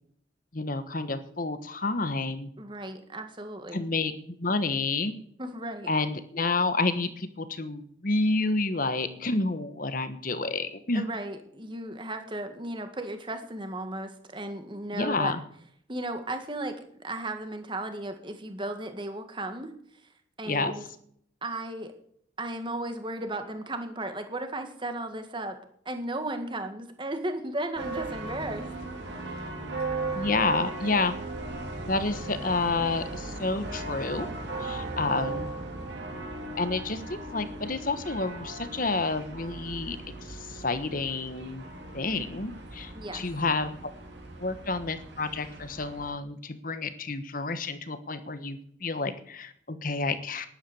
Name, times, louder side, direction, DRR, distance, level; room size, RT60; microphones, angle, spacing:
voice 1, 0.5-2.5 3.7-5.1 5.9-11.0 14.9-15.4 20.4-20.7 30.1-31.1 31.8-34.3 34.6-35.5 36.6-40.0 40.2-41.6 41.9-43.7 44.4-50.5, left 3 dB, 45° left, 11 dB, 1.2 m, -29 dB
voice 2, 2.6-3.9 5.4-5.9 10.9-15.3 15.9-19.7 20.4-20.9 21.4-21.9 22.4-25.6 25.9-28.7 42.9-43.2, right 1 dB, 25° right, 7 dB, 1.8 m, -35 dB
sound 1, 27.8-46.1, right 2 dB, 60° right, 3.2 m, -37 dB
11.5 x 11.0 x 7.1 m, 0.66 s
head